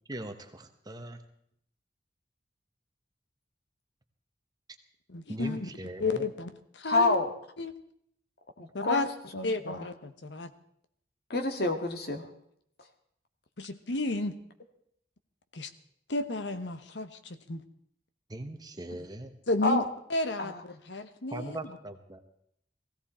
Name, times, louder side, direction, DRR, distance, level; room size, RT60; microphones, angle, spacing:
voice 1, 0.1-1.2 5.3-6.3 18.3-19.3 21.3-22.2, right 1 dB, 20° right, 6 dB, 1.1 m, -40 dB
voice 2, 5.1-5.7 6.0-7.2 7.6-7.7 8.7-9.1 9.4-10.5 13.6-14.3 15.5-15.7 16.1-17.6 19.5-19.8 20.1-21.6, left 2 dB, 75° left, 10 dB, 1.1 m, -32 dB
voice 3, 6.8-7.3 8.6-9.0 9.3-9.9 11.3-12.3 19.6-19.8 20.4-20.6, left 2 dB, 60° left, 4 dB, 1.8 m, -28 dB
17.0 x 16.5 x 4.3 m, 0.70 s
head